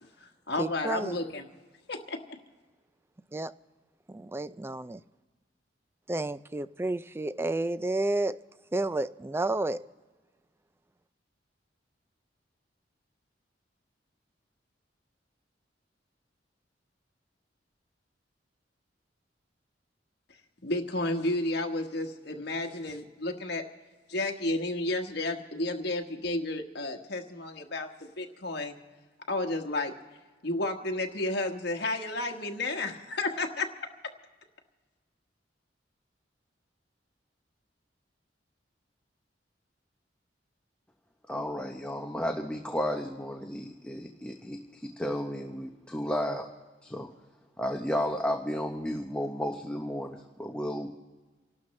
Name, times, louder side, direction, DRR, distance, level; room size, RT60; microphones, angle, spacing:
voice 1, 0.0-1.4 1.9-2.4 20.6-23.6 24.1-28.8 29.3-29.9 30.4-33.7, left 2 dB, 65° left, 1.3 m, -32 dB
voice 2, 0.6-1.2 3.3-3.5 4.1-5.0 6.1-8.4 8.7-9.9, right 2 dB, 15° right, 0.3 m, -31 dB
voice 3, 41.3-46.5 46.8-47.1 47.6-50.9, equal, 5° left, 0.8 m, -33 dB
29.0 x 12.0 x 3.2 m
head